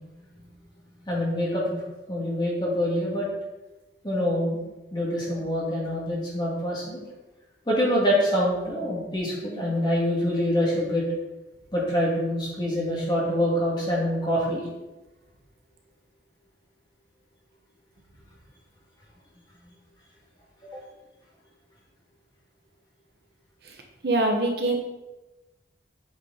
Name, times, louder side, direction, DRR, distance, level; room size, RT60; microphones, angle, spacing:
voice 1, 1.1-1.8 2.1-3.3 4.0-4.6 4.9-7.0 7.7-11.1 11.7-14.6 20.6-20.8, equal, 25° left, -5 dB, 2.2 m, -25 dB
voice 2, 24.0-24.8, right 2 dB, 55° right, 2 dB, 1.1 m, -23 dB
8.8 x 5.1 x 4.0 m, 1.1 s
head